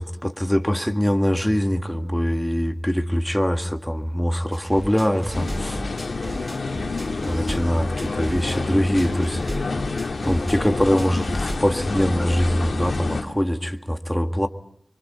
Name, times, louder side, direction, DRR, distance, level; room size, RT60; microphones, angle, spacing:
voice 1, 0.0-5.8 6.8-6.9 7.2-9.8 10.3-14.5, equal, 5° left, 1.8 m, -23 dB
sound 1, 4.5-11.6, right 1 dB, 25° right, 2.1 m, -36 dB
sound 2, 5.3-13.2, left 3 dB, 80° left, 2.6 m, -28 dB
27.0 x 24.0 x 5.6 m
wide cardioid pair, 55°, 0 cm